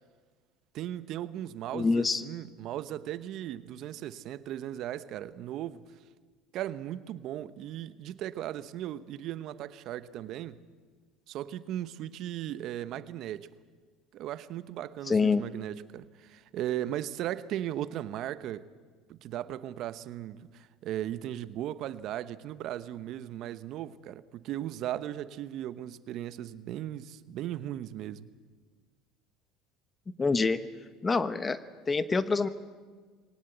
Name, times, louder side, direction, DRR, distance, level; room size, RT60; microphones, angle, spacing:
voice 1, 0.7-5.8 6.5-10.6 11.3-13.5 14.1-18.7 19.1-28.3, right 12 dB, 60° right, 0.9 m, -37 dB
voice 2, 1.7-2.2 15.1-15.4 30.2-30.6 31.0-31.6 31.9-32.5, left 4 dB, 25° left, 1.0 m, -26 dB
21.5 x 18.0 x 8.2 m
hypercardioid pair, 85°, 0 cm